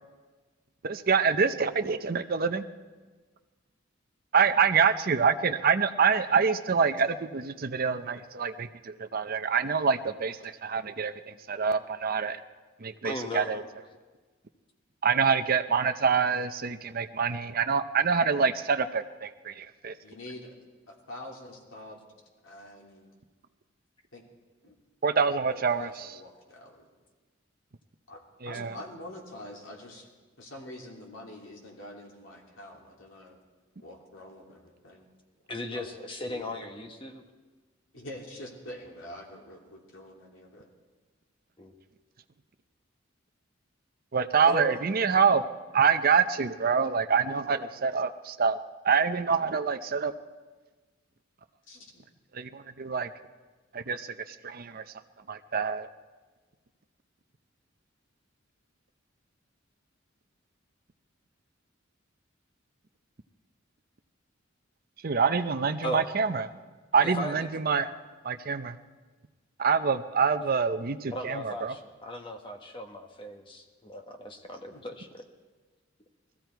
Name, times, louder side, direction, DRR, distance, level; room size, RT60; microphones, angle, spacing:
voice 1, 0.8-2.6 4.3-12.4 12.8-13.6 15.0-19.9 25.0-26.1 28.4-28.8 44.1-45.4 45.7-48.6 48.8-50.1 52.3-53.1 53.7-54.8 55.3-55.9 65.0-66.5 66.9-67.9 68.2-68.8 69.6-71.7, right 6 dB, 50° right, 9 dB, 0.6 m, -26 dB
voice 2, 13.0-13.6 35.5-37.2 41.6-41.7 44.5-44.8 65.8-66.1 67.0-67.5 67.8-67.9 71.1-75.3, left 1 dB, 25° left, 4 dB, 1.4 m, -37 dB
voice 3, 20.0-20.5 20.9-22.0 22.4-23.1 24.1-24.2 24.6-24.7 25.2-26.9 28.1-28.2 28.4-30.1 30.4-33.4 33.8-35.1 35.7-35.8 36.3-36.4 37.9-40.7 51.7-52.1 74.7-74.8, left 1 dB, 80° left, -1 dB, 3.0 m, -45 dB
20.0 x 14.5 x 4.6 m, 1.3 s
head